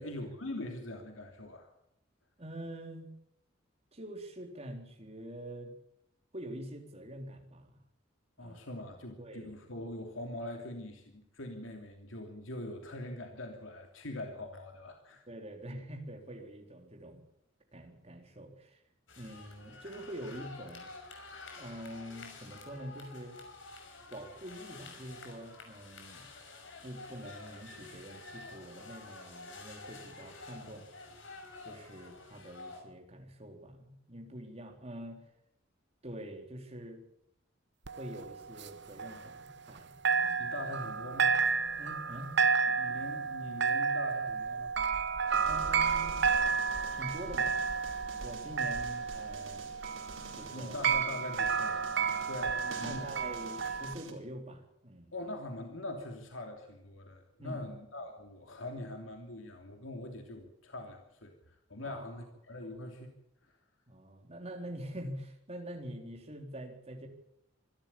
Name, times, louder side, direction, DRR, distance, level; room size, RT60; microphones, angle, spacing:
voice 1, 0.0-1.7 8.4-15.3 40.4-41.4 42.7-44.7 50.5-53.1 55.1-63.1 63.4-63.6, left 1 dB, 85° left, 3 dB, 3.0 m, -43 dB
voice 2, 2.4-3.1 3.9-5.8 6.3-7.8 8.4-8.6 9.2-9.6 15.3-17.2 17.7-18.8 19.2-20.9 21.6-23.4 24.1-26.2 26.8-30.9 31.6-35.2 36.0-37.0 38.0-39.9 40.2-40.4 41.8-42.3 45.5-46.2 46.9-47.7 48.2-49.7 50.3-50.9 52.6-55.1 57.4-57.6 61.8-62.0 63.9-67.1, right 1 dB, 35° right, 4 dB, 3.8 m, -45 dB
sound 1, 19.1-32.8, left 3 dB, 70° left, 5.9 m, -49 dB
sound 2, 37.9-39.8 40.0-53.9, right 5 dB, 65° right, 1.3 m, -31 dB
sound 3, 45.3-54.1, right 4 dB, 85° right, 4.4 m, -50 dB
25.5 x 13.0 x 8.7 m, 0.76 s
head